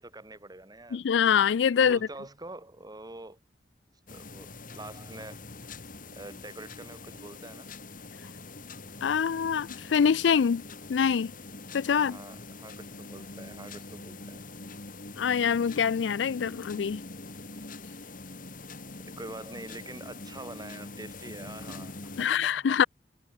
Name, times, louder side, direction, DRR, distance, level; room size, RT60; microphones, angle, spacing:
voice 1, 0.0-1.0 1.8-3.4 4.1-5.4 6.1-7.7 11.9-14.4 19.2-22.8, right 2 dB, 20° right, 2.3 m, -45 dB
voice 2, 0.9-2.0 9.0-10.6 10.9-11.3 11.7-12.2 15.2-17.0 22.2-22.8, left 7 dB, 90° left, 0.4 m, -24 dB
sound 1, 4.1-22.3, left 3 dB, 50° left, 3.7 m, -44 dB
head